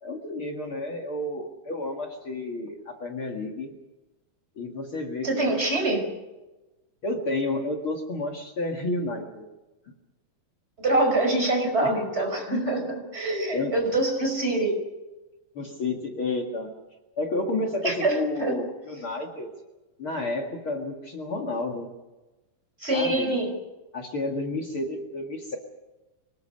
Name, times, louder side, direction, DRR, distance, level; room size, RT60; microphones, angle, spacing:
voice 1, 0.0-3.7 4.6-5.8 7.0-9.5 11.8-11.9 12.5-12.8 13.5-13.8 15.5-16.7 17.2-19.5 20.0-21.9 22.9-23.4 23.9-25.6, left 2 dB, 45° left, 2 dB, 2.6 m, -31 dB
voice 2, 5.2-6.0 10.8-12.8 13.1-14.7 17.8-18.6 22.8-23.5, right 2 dB, 20° right, 3 dB, 5.6 m, -25 dB
25.0 x 19.5 x 6.7 m, 1.1 s
omnidirectional pair, 3.6 m